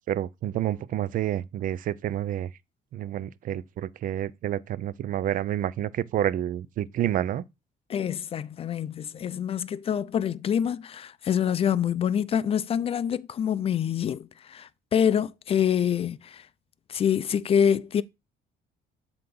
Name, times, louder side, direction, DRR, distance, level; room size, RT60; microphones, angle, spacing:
voice 1, 0.1-2.5 2.9-7.4, right 11 dB, 55° right, 0.5 m, -29 dB
voice 2, 7.9-16.5 16.9-18.0, left 8 dB, 35° left, 0.4 m, -26 dB
7.5 x 2.9 x 5.3 m
cardioid pair, 110°, 17 cm